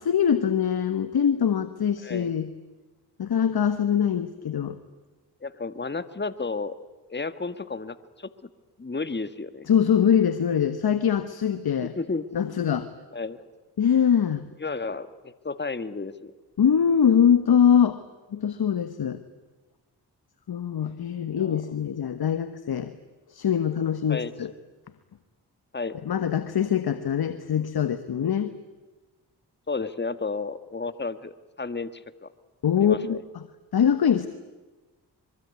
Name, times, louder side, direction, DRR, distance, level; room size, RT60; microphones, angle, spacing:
voice 1, 0.0-2.5 3.2-4.8 9.7-11.9 12.3-12.9 13.8-14.4 16.6-18.0 18.3-19.2 20.5-22.9 23.3-24.5 26.0-28.5 32.6-33.2 33.7-34.3, left 8 dB, 60° left, 12 dB, 1.5 m, -23 dB
voice 2, 5.4-6.7 7.1-8.3 8.8-9.7 11.8-12.3 13.1-13.5 14.6-16.3 21.4-21.6 24.1-24.3 25.7-26.0 29.7-31.3 31.6-32.3 32.8-33.2, left 3 dB, 25° left, 13 dB, 1.9 m, -32 dB
24.5 x 23.5 x 9.7 m, 1.2 s
supercardioid pair, 45°, 41 cm